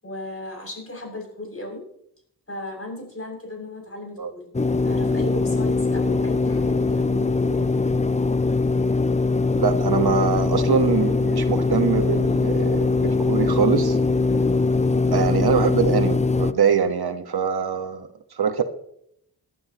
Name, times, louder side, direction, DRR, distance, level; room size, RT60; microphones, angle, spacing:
voice 1, 0.0-1.9 2.5-4.6 4.8-7.8 14.3-14.6, left 1 dB, 35° left, 0 dB, 7.1 m, -35 dB
sound 1, 4.5-16.5, left 3 dB, 15° left, 0.5 m, -21 dB
voice 2, 9.5-14.0 15.1-18.6, right 6 dB, 65° right, 6 dB, 1.4 m, -23 dB
19.5 x 12.0 x 3.0 m, 0.69 s
wide cardioid pair, 85°, 41 cm